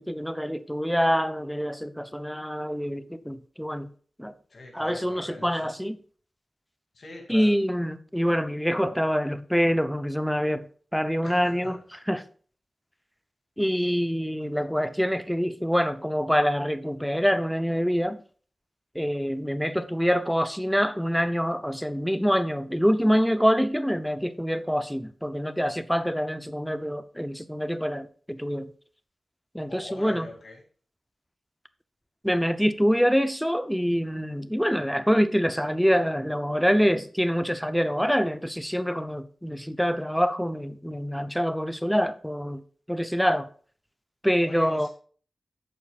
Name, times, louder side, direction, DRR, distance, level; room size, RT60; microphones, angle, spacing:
voice 1, 0.0-3.9 4.2-4.3 4.7-6.0 7.3-10.6 10.9-11.8 12.1-12.3 13.6-18.2 18.9-28.7 29.5-30.3 32.2-42.6 42.9-43.5 44.2-44.9, equal, ahead, 0.6 m, -25 dB
voice 2, 4.5-5.7 6.9-7.5 11.2-11.8 29.7-30.6 44.4-44.9, left 2 dB, 60° left, 2.7 m, -42 dB
11.5 x 8.5 x 2.4 m
wide cardioid pair, 130°, 0 cm